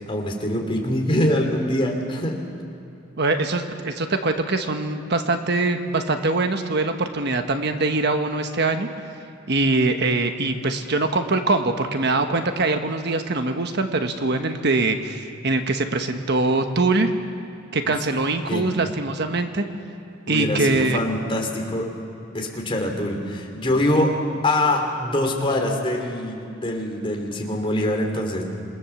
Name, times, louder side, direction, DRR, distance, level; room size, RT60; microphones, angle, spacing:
voice 1, 0.1-2.4 17.8-18.0 18.5-18.7 20.3-21.9 22.3-24.1 24.4-28.4, left 1 dB, 25° left, 1 dB, 3.2 m, -24 dB
voice 2, 3.2-8.9 9.5-17.1 17.7-19.6 20.3-21.0, right 3 dB, 55° right, 6 dB, 1.3 m, -23 dB
27.0 x 20.0 x 7.2 m, 2.8 s
head